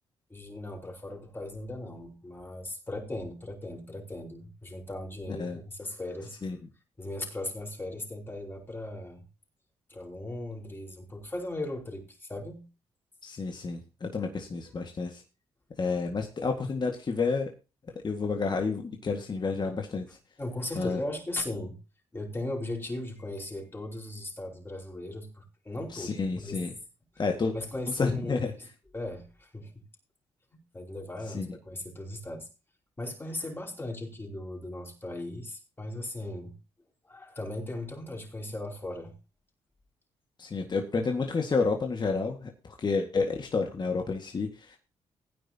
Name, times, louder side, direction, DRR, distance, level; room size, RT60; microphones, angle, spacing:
voice 1, 0.3-6.4 7.0-9.3 9.9-12.6 20.4-21.8 22.1-26.6 27.5-28.7 28.9-29.8 30.5-32.5 33.0-36.6 37.0-39.1, left 1 dB, 20° left, 4.9 m, -38 dB
voice 2, 13.2-15.2 15.8-17.5 18.0-20.1 20.8-21.0 25.9-26.7 27.2-27.5 27.9-28.5 31.3-31.5 40.4-44.8, left 4 dB, 40° left, 1.9 m, -30 dB
16.5 x 9.7 x 2.9 m
cardioid pair, 75°, 11 cm